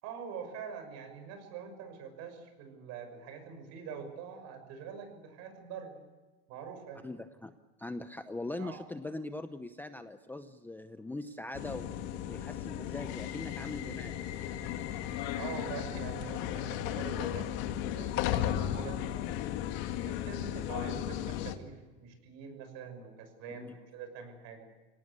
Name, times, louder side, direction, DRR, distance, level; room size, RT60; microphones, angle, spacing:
voice 1, 0.0-6.0 6.5-7.1 8.6-8.8 15.3-17.5 18.0-19.1 19.9-24.7, right 6 dB, 55° right, 8 dB, 6.1 m, -44 dB
voice 2, 7.0-11.9 12.3-14.3 23.5-23.7, left 2 dB, 5° left, 9 dB, 0.7 m, -41 dB
sound 1, 11.5-21.6, left 11 dB, 65° left, 2.2 m, -35 dB
25.5 x 18.0 x 8.3 m, 1.3 s
supercardioid pair, 140°, 33 cm